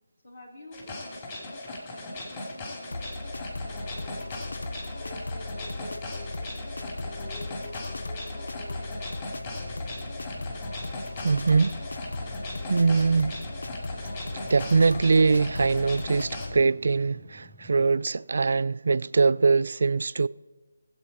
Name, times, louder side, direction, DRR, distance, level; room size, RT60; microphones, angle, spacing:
voice 1, 0.2-3.1 3.7-4.3 4.6-9.0, left 1 dB, 60° left, 3.6 m, -48 dB
sound 1, 0.7-16.5, left 2 dB, 30° left, 2.7 m, -39 dB
sound 2, 2.9-16.6, left 2 dB, 75° left, 0.5 m, -37 dB
sound 3, 9.3-17.9, left 2 dB, 5° left, 0.5 m, -52 dB
voice 2, 11.2-11.9 12.7-13.5 14.5-20.3, right 4 dB, 60° right, 0.3 m, -22 dB
19.5 x 8.1 x 4.2 m
figure-of-eight pair, 165°, 0 cm